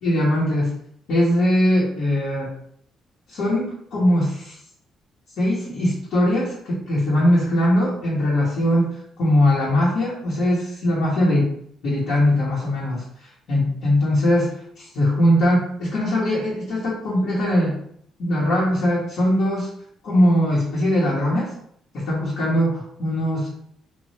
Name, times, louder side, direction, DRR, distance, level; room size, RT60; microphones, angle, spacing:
voice 1, 0.0-0.7 1.1-2.5 3.3-4.6 5.4-11.5 11.8-17.8 18.2-19.7 20.0-21.5 21.9-23.5, left 1 dB, 70° left, -7 dB, 1.1 m, -21 dB
3.1 x 2.4 x 2.8 m, 0.67 s
cardioid pair, 120°, 0 cm